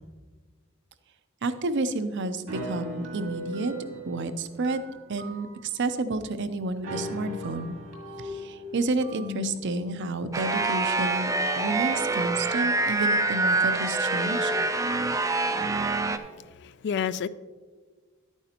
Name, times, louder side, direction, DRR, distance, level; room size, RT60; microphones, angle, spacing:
voice 1, 1.4-3.7 4.1-4.8 5.1-7.8 8.2-14.5, right 3 dB, 60° right, 11 dB, 0.6 m, -30 dB
sound 1, 2.5-5.8 6.3-6.4 6.7-9.6, left 1 dB, 80° right, 1.9 m, -38 dB
sound 2, 10.3-16.2, right 2 dB, 15° right, 0.4 m, -26 dB
voice 2, 16.1-17.3, left 7 dB, 55° left, 15 dB, 0.3 m, -31 dB
11.0 x 9.0 x 2.9 m, 1.4 s
head